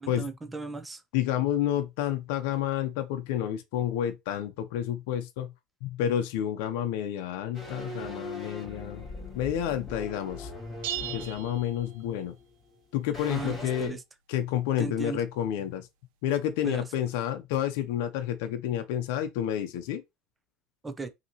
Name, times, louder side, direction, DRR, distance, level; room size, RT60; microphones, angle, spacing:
voice 1, 0.0-1.0 13.3-14.0 14.8-15.2 16.6-16.9 20.8-21.1, right 3 dB, 10° right, 0.5 m, -36 dB
voice 2, 1.1-5.5 5.8-9.1 9.3-10.5 11.1-12.3 12.9-14.0 14.3-15.9 16.2-20.0, left 10 dB, 70° left, 0.6 m, -30 dB
sound 1, 7.5-12.8 13.1-13.9, left 2 dB, 15° left, 2.2 m, -41 dB
sound 2, 10.8-12.4, right 13 dB, 75° right, 0.7 m, -38 dB
5.5 x 2.9 x 2.9 m
cardioid pair, 175°, 0 cm